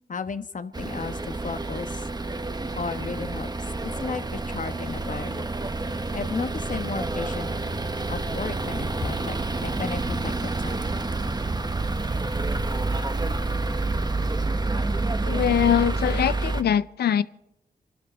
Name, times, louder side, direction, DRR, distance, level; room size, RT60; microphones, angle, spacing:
voice 1, 0.1-2.1 2.7-3.5 3.8-5.5 6.1-7.5 8.1-9.4 9.6-10.8, left 5 dB, 55° left, 10 dB, 1.2 m, -34 dB
sound 1, 0.7-16.6, right 3 dB, 25° right, 1.1 m, -28 dB
voice 2, 15.2-17.2, left 9 dB, 85° left, 16 dB, 0.6 m, -22 dB
26.5 x 12.0 x 4.4 m, 0.87 s
cardioid pair, 50°, 16 cm